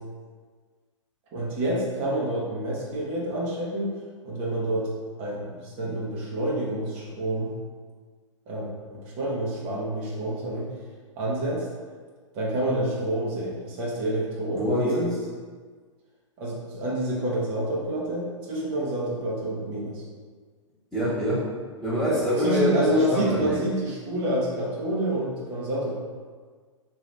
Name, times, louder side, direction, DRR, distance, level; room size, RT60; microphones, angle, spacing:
voice 1, 1.3-3.9 4.2-4.9 5.2-7.5 8.5-10.7 11.2-11.7 12.3-15.1 16.4-20.0 22.3-26.0, right 1 dB, 35° right, -5 dB, 0.9 m, -28 dB
voice 2, 14.5-15.0 20.9-21.5 21.8-23.6, equal, ahead, -12 dB, 1.2 m, -25 dB
3.0 x 2.7 x 3.3 m, 1.6 s
hypercardioid pair, 110°, 16 cm